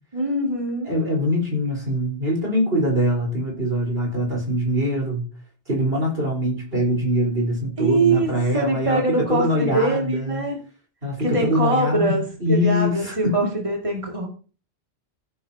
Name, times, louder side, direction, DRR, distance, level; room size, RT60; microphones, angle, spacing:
voice 1, 0.1-0.9 7.8-8.3 8.5-10.6 11.2-14.3, right 2 dB, 30° right, -1 dB, 2.4 m, -23 dB
voice 2, 0.8-5.2 5.7-10.4 11.0-13.5, equal, 60° right, -2 dB, 4.6 m, -23 dB
15.0 x 8.8 x 2.8 m, 0.37 s
omnidirectional pair, 1.1 m